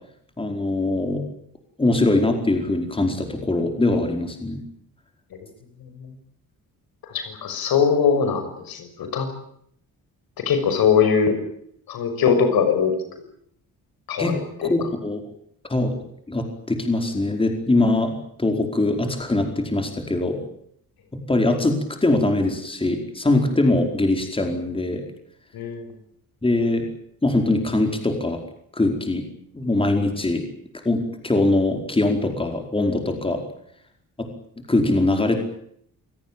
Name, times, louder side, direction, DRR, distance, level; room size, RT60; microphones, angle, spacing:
voice 1, 0.4-1.2 1.8-4.6 14.2-14.3 14.6-15.2 15.7-15.9 16.3-20.4 21.3-25.0 26.4-26.8 27.2-28.4 28.7-29.2 29.5-30.4 30.8-33.4 34.2-34.3 34.7-35.4, left 2 dB, 15° left, 4 dB, 4.8 m, -22 dB
voice 2, 7.1-9.3 10.4-11.4 11.9-12.9 14.1-14.7 25.5-25.9, left 6 dB, 85° left, 8 dB, 6.2 m, -21 dB
28.5 x 17.5 x 9.0 m, 0.69 s
cardioid pair, 135°, 35 cm